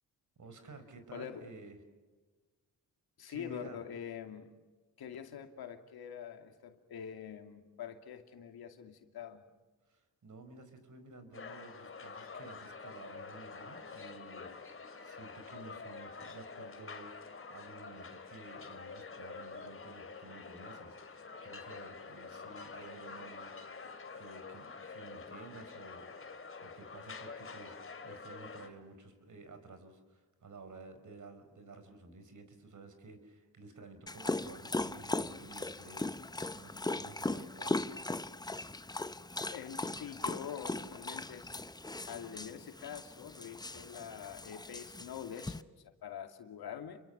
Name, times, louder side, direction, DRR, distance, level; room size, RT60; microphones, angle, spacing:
voice 1, 0.4-1.8 3.2-3.8 9.9-14.5 15.0-23.5 24.1-26.3 26.6-37.8, right 3 dB, 50° right, 8 dB, 5.1 m, -53 dB
voice 2, 1.1-1.5 3.2-4.6 5.0-9.4 39.5-41.5 42.1-47.0, left 8 dB, 75° left, 6 dB, 2.5 m, -45 dB
sound 1, 11.3-28.7, left 4 dB, 35° left, 2.7 m, -47 dB
Dog, 34.1-45.6, left 2 dB, 10° left, 0.8 m, -39 dB
29.5 x 23.5 x 6.7 m, 1.3 s
cardioid pair, 80°, 38 cm